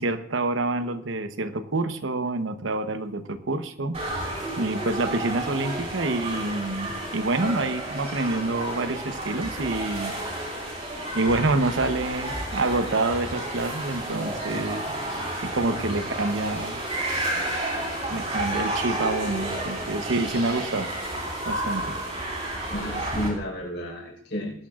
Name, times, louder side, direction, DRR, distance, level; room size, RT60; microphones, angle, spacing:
voice 1, 0.0-4.0 4.6-10.1 11.1-14.9 15.4-16.8 18.1-20.9 21.5-22.0, right 2 dB, 90° right, 10 dB, 0.9 m, -27 dB
sound 1, 3.9-23.3, right 1 dB, 35° right, 4.6 m, -31 dB
voice 2, 14.4-14.7 22.7-24.5, left 1 dB, 65° left, -1 dB, 4.8 m, -32 dB
20.5 x 12.0 x 2.5 m, 0.64 s
head